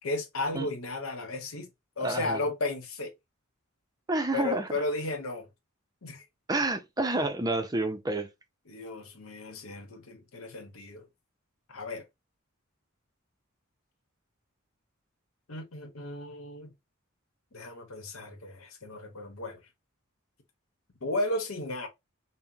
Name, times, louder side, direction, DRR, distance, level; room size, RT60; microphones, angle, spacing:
voice 1, 0.0-1.7 2.0-3.1 4.3-5.5 6.0-6.2 8.7-11.1 11.7-12.0 15.5-16.7 17.5-19.6 21.0-21.9, left 2 dB, 75° left, 1.1 m, -34 dB
voice 2, 2.0-2.4 4.1-4.7 6.5-8.3, right 2 dB, 20° right, 0.5 m, -29 dB
5.6 x 2.1 x 2.7 m
head